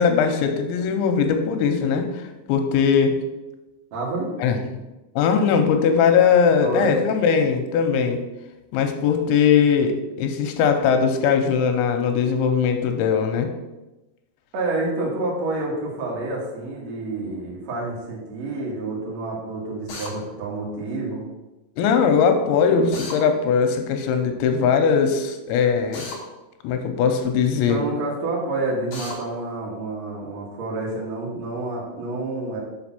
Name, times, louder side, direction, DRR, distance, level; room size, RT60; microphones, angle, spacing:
voice 1, 0.0-2.2 2.5-3.2 4.4-4.6 5.2-8.2 8.7-13.5 21.8-26.0 26.6-27.8, left 6 dB, 90° left, 6 dB, 3.0 m, -20 dB
voice 2, 3.9-4.3 6.6-7.1 14.5-21.2 27.7-32.6, right 2 dB, 65° right, -3 dB, 1.7 m, -28 dB
Drill, 19.9-20.1 22.9-23.2 25.9-26.2 28.9-29.2, left 3 dB, 55° left, 1.7 m, -34 dB
6.1 x 5.2 x 5.8 m, 1.0 s
omnidirectional pair, 5.3 m